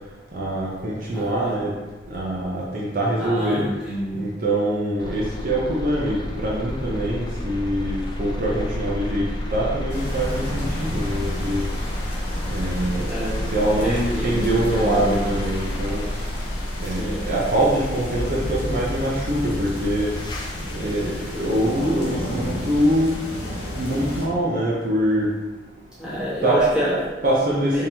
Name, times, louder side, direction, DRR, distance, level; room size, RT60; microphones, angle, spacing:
voice 1, 0.3-1.7 2.1-3.6 4.1-9.2 9.5-11.6 12.5-13.1 13.5-16.0 16.8-20.1 20.7-23.1 23.8-25.3 26.4-26.6 27.2-27.9, right 1 dB, 50° right, -5 dB, 0.6 m, -24 dB
voice 2, 1.1-1.5 3.2-4.3 13.0-13.5 13.8-15.2 16.8-17.2 26.0-27.2 27.7-27.9, equal, 5° right, -11 dB, 1.2 m, -28 dB
sound 1, 5.0-23.2, left 1 dB, 25° left, 0.3 m, -30 dB
sound 2, 9.9-24.3, left 1 dB, 60° left, 0.8 m, -33 dB
3.8 x 2.8 x 2.8 m, 1.2 s
head